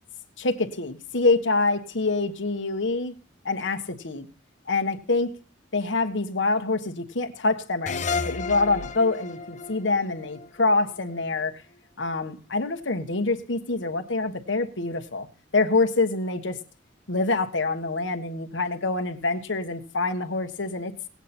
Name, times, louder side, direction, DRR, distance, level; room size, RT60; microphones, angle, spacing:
voice 1, 0.4-3.2 3.4-4.3 4.7-5.4 5.7-11.5 12.0-15.3 15.5-16.6 17.1-20.9, left 3 dB, 75° left, 1.3 m, -26 dB
sound 1, 7.9-11.2, left 4 dB, 40° left, 0.7 m, -32 dB
19.0 x 8.3 x 4.3 m
head